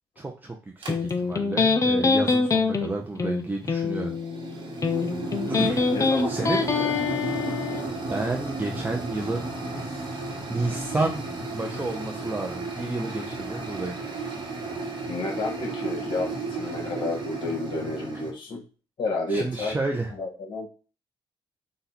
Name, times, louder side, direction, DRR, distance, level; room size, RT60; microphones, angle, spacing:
voice 1, 0.2-4.1 4.5-4.6 5.5-5.9 6.3-6.6 8.1-14.0 19.3-20.1, right 2 dB, 20° right, 0 dB, 0.7 m, -31 dB
sound 1, 0.8-1.1 3.4-18.3, right 3 dB, 55° right, 1.3 m, -33 dB
Electric guitar, 0.9-7.9, left 4 dB, 35° left, 0.7 m, -25 dB
voice 2, 5.9-6.9 15.1-18.6 19.0-19.8 20.1-20.7, left 3 dB, 60° left, 0 dB, 1.9 m, -31 dB
4.2 x 2.5 x 4.2 m, 0.36 s
cardioid pair, 75°, 10 cm